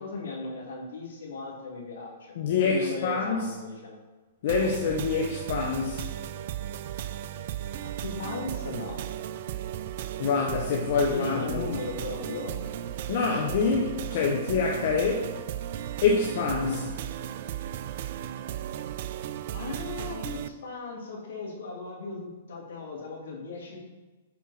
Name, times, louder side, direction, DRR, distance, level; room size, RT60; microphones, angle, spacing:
voice 1, 0.0-4.0 7.8-9.0 10.9-12.6 19.5-23.9, left 3 dB, 75° left, -2 dB, 2.4 m, -37 dB
voice 2, 2.4-3.5 4.4-6.1 10.2-11.7 13.1-15.3 16.0-17.0, left 5 dB, 60° left, -1 dB, 1.0 m, -26 dB
sound 1, 4.5-20.5, right 11 dB, 55° right, 0.4 m, -35 dB
10.5 x 4.5 x 4.2 m, 1.2 s
hypercardioid pair, 120°, 0 cm